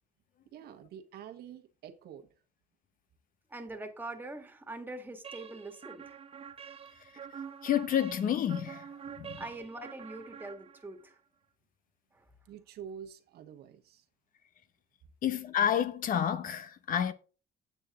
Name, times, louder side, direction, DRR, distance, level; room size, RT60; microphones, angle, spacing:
voice 1, 0.5-2.3 12.4-14.0, right 8 dB, 70° right, 1.4 m, -47 dB
voice 2, 3.5-6.1 9.4-11.1, right 2 dB, 10° right, 1.9 m, -43 dB
sound 1, 5.2-11.1, right 7 dB, 35° right, 0.9 m, -46 dB
voice 3, 7.6-8.9 9.2-9.4 15.2-17.1, left 9 dB, 55° left, 0.9 m, -29 dB
8.9 x 8.3 x 3.7 m
cardioid pair, 110°, 17 cm